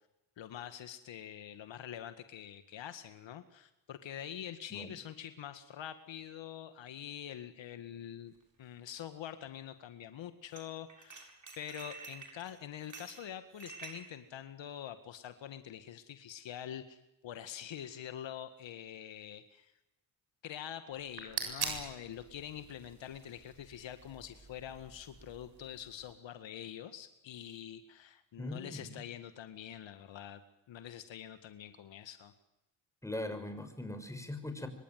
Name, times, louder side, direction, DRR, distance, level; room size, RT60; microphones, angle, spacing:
voice 1, 0.4-8.3 8.6-19.7 20.4-30.4 30.7-32.3, left 10 dB, 70° left, 10 dB, 1.9 m, -45 dB
sound 1, 8.3-8.4 10.5-10.6 10.9-14.0, right 4 dB, 40° right, 7.6 m, -49 dB
sound 2, 20.9-26.1, right 5 dB, 55° right, 7.7 m, -44 dB
voice 2, 28.4-29.0 33.0-34.7, left 1 dB, 5° left, 7 dB, 6.1 m, -40 dB
26.0 x 24.5 x 9.4 m, 0.92 s
cardioid pair, 75°, 46 cm